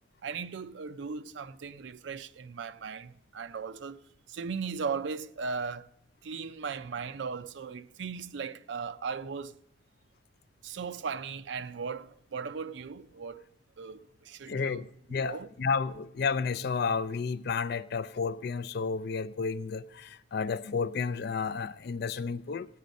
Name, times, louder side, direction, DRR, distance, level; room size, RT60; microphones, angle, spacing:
voice 1, 0.2-4.0 4.3-5.9 6.2-9.5 10.6-13.5 13.8-14.8 15.2-15.5, right 5 dB, 70° right, 0.5 m, -37 dB
voice 2, 14.5-22.7, left 5 dB, 55° left, 0.4 m, -32 dB
15.5 x 9.1 x 5.2 m
head